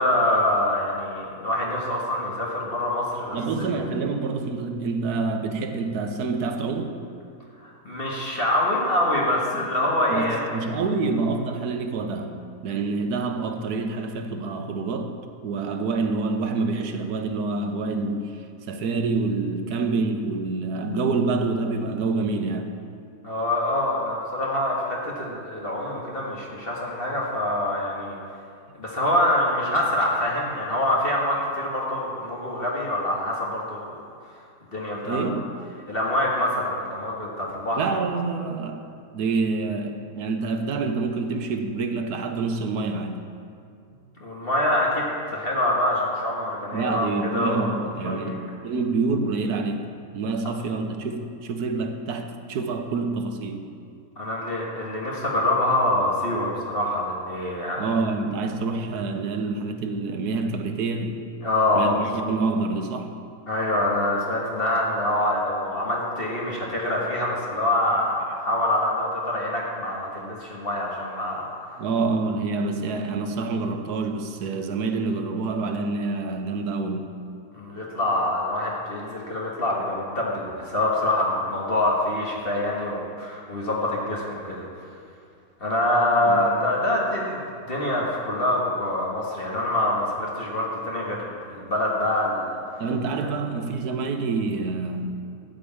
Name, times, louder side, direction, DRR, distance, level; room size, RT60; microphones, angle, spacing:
voice 1, 0.0-3.8 7.6-10.5 23.2-28.2 28.8-33.9 34.7-35.2 35.9-37.9 44.2-45.0 45.3-47.8 48.0-48.4 54.2-57.9 61.4-62.0 63.5-71.5 77.5-84.7 85.6-92.6 93.2-93.3, left 1 dB, 35° left, -4 dB, 1.7 m, -25 dB
voice 2, 3.3-6.9 9.5-9.6 10.1-12.4 12.6-15.1 15.4-18.3 18.7-22.8 35.0-35.4 37.8-43.2 46.7-49.9 50.1-53.7 57.8-61.2 61.7-63.1 71.8-77.1 86.3-86.5 92.8-95.1, right 3 dB, 75° right, 6 dB, 1.4 m, -27 dB
14.0 x 5.2 x 8.6 m, 2.4 s
omnidirectional pair, 1.7 m